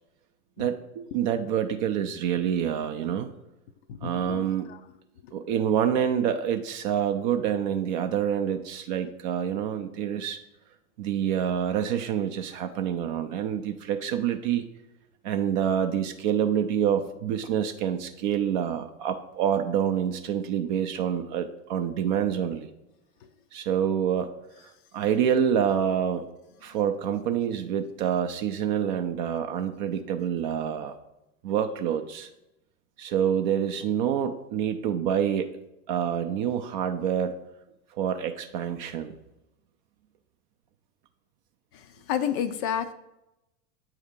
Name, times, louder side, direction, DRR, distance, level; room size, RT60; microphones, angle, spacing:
voice 1, 0.6-3.3 4.0-4.7 5.3-10.4 11.0-14.7 15.2-22.7 23.5-24.3 24.9-26.3 26.6-30.9 31.4-32.3 33.0-35.5 35.9-37.4 37.9-39.2, right 9 dB, 35° right, 7 dB, 0.4 m, -27 dB
voice 2, 3.9-4.8 41.7-42.9, left 9 dB, 40° left, 11 dB, 0.4 m, -31 dB
8.4 x 2.8 x 5.0 m, 0.90 s
figure-of-eight pair, 95°, 45 cm